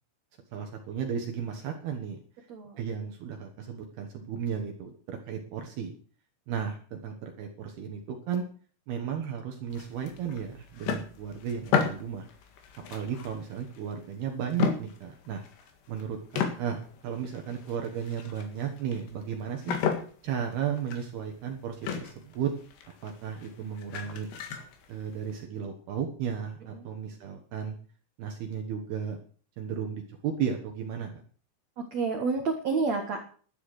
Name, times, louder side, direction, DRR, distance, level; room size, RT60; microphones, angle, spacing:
voice 1, 0.5-2.2 2.8-5.9 6.5-8.5 8.9-12.3 12.9-15.4 15.9-16.8 17.0-19.8 20.2-22.5 23.0-24.3 24.9-27.8 28.2-29.2 29.6-31.2, right 8 dB, 65° right, 3 dB, 2.9 m, -34 dB
voice 2, 2.5-2.8 26.7-26.9 31.8-33.2, right 4 dB, 85° right, 4 dB, 1.5 m, -29 dB
sound 1, 9.7-14.2 14.5-16.0 16.3-25.4, left 7 dB, 65° left, 3.6 m, -34 dB
12.5 x 9.6 x 6.6 m, 0.43 s
omnidirectional pair, 5.6 m